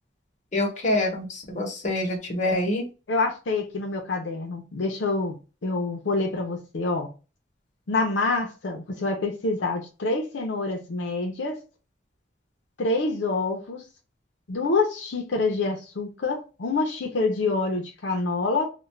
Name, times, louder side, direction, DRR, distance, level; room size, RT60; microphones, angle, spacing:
voice 1, 0.5-2.9, left 1 dB, 40° left, 0.9 m, -26 dB
voice 2, 3.1-5.3 5.6-7.1 7.9-11.6 12.8-13.8 14.5-18.7, left 3 dB, 85° left, 0.6 m, -26 dB
2.4 x 2.2 x 3.1 m
head